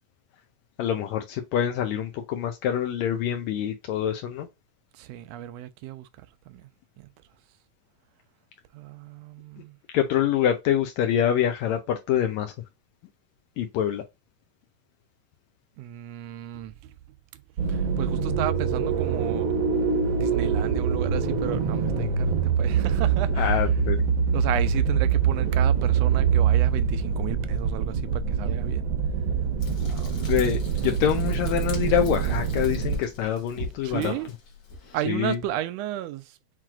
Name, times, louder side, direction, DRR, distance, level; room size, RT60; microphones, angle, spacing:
voice 1, 0.8-4.5 9.9-12.5 13.6-14.0 23.4-24.0 30.3-34.1 35.1-35.4, left 10 dB, 80° left, 1.8 m, -25 dB
voice 2, 4.9-6.7 7.0-7.1 8.7-9.8 15.8-16.9 17.3-17.4 17.7-19.6 20.2-23.7 24.3-28.9 29.9-30.4 33.8-34.3 34.9-36.4, right 13 dB, 80° right, 1.6 m, -34 dB
sound 1, 17.6-33.0, right 6 dB, 65° right, 1.3 m, -24 dB
Frying (food), 29.6-35.0, left 3 dB, 50° left, 2.0 m, -42 dB
7.5 x 2.9 x 2.4 m
omnidirectional pair, 3.3 m